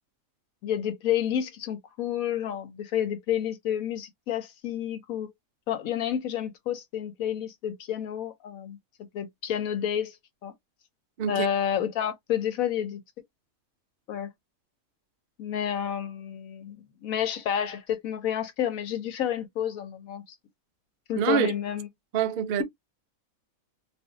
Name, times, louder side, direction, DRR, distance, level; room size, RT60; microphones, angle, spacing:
voice 1, 0.6-5.3 5.7-8.8 9.1-10.2 10.4-10.5 11.3-13.0 14.1-14.3 15.4-16.8 17.0-20.2 21.1-21.9, left 9 dB, 80° left, 1.2 m, -30 dB
voice 2, 21.2-21.5 22.1-22.6, right 8 dB, 75° right, 0.5 m, -25 dB
2.6 x 2.3 x 3.7 m
omnidirectional pair, 1.5 m